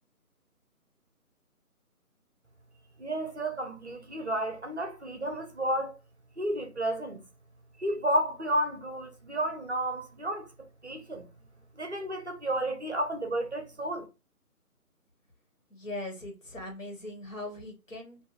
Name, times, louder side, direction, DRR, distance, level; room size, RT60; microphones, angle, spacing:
voice 1, 3.0-6.0 6.4-7.2 7.8-10.5 10.8-11.3 11.8-14.1, right 1 dB, 50° right, 0.6 m, -31 dB
voice 2, 15.7-18.2, left 2 dB, 55° left, 1.5 m, -40 dB
4.8 x 2.5 x 2.4 m
figure-of-eight pair, 170°, 45 cm